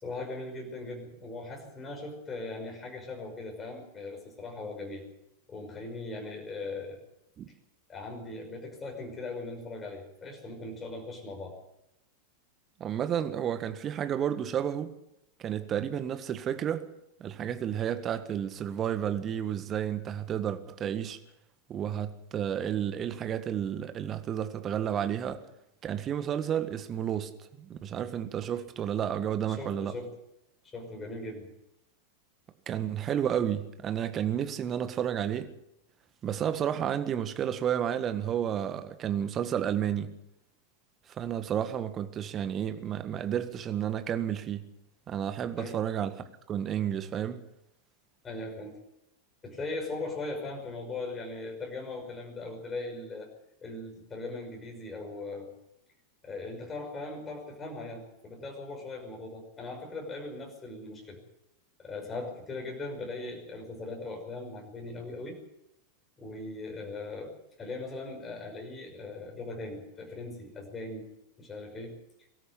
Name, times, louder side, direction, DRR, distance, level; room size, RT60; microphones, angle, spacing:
voice 1, 0.0-5.0 5.5-7.0 7.9-11.6 29.5-30.1 30.6-31.5 45.6-45.8 48.2-48.8 49.4-55.5 56.2-61.2 61.8-65.4 66.2-71.1 71.4-72.0, left 2 dB, 20° left, 5.7 m, -39 dB
voice 2, 12.8-14.9 15.4-16.9 17.2-21.2 21.7-25.4 25.8-27.3 27.6-29.9 32.7-35.5 36.2-40.1 41.1-44.6 45.1-46.2 46.5-47.4, right 9 dB, 25° right, 1.7 m, -31 dB
23.0 x 13.5 x 8.4 m
figure-of-eight pair, 90°, 0 cm